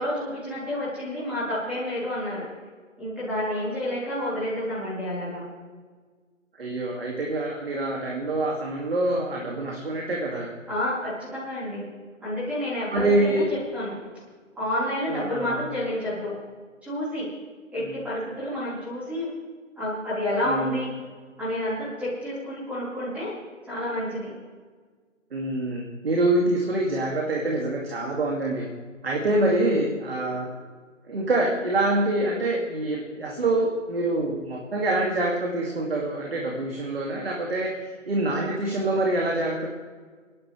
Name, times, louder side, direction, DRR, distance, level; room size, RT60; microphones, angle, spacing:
voice 1, 0.0-2.4 3.0-5.4 10.7-11.8 12.2-13.9 14.5-16.4 16.8-17.3 17.7-19.3 19.8-20.9 21.4-23.3 23.6-24.3, left 1 dB, 5° right, -12 dB, 4.3 m, -29 dB
voice 2, 6.6-10.5 12.9-13.4 15.1-15.6 17.8-17.9 20.4-20.9 25.3-28.7 29.0-30.5 31.0-37.8 38.1-39.7, right 2 dB, 50° right, -1 dB, 2.4 m, -25 dB
28.0 x 11.5 x 3.3 m, 1.5 s
figure-of-eight pair, 150°, 38 cm